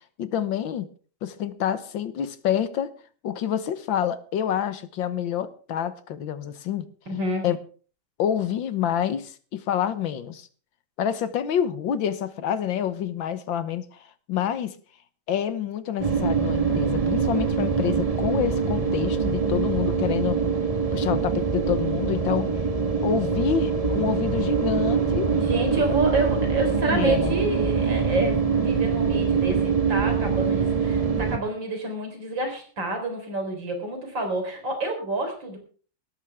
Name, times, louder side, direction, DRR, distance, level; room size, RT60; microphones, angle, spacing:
voice 1, 0.2-0.9 1.2-2.9 3.2-6.8 7.4-7.6 8.2-10.5 11.0-14.7 15.3-20.4 20.9-22.5 23.0-25.3 26.9-27.4, left 9 dB, 75° left, 12 dB, 1.9 m, -27 dB
voice 2, 7.1-7.5 25.3-35.6, right 2 dB, 70° right, 4 dB, 4.9 m, -28 dB
sound 1, 16.0-31.4, right 5 dB, 20° right, 1.5 m, -24 dB
18.0 x 13.5 x 3.6 m, 0.41 s
omnidirectional pair, 2.1 m